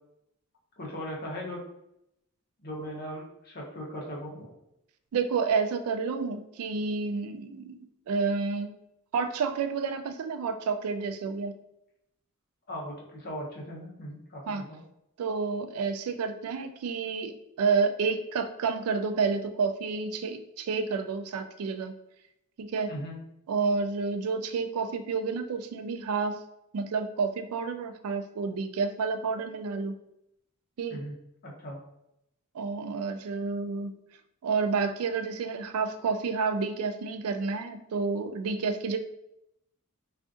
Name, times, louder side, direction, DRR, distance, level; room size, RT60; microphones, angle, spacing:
voice 1, 0.8-1.6 2.6-4.5 12.7-14.8 22.9-23.2 30.9-31.2 31.4-31.8, equal, 45° left, -3 dB, 0.8 m, -38 dB
voice 2, 5.1-8.7 9.1-11.5 14.5-14.6 15.2-21.9 22.6-22.9 23.5-26.4 26.7-29.9 30.8-31.0 32.5-33.9 34.4-39.0, right 5 dB, 75° right, 8 dB, 0.3 m, -30 dB
3.6 x 2.4 x 2.5 m, 0.81 s
head